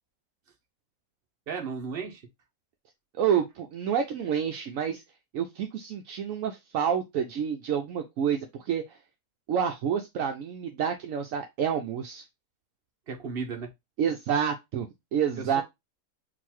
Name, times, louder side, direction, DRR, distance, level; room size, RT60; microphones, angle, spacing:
voice 1, 1.5-2.2 13.1-13.7 15.4-15.6, right 5 dB, 45° right, 1.1 m, -34 dB
voice 2, 3.2-5.0 5.3-9.0 9.5-12.2 14.0-14.9 15.1-15.6, right 8 dB, 70° right, 0.9 m, -28 dB
4.0 x 2.5 x 4.3 m
omnidirectional pair, 1.5 m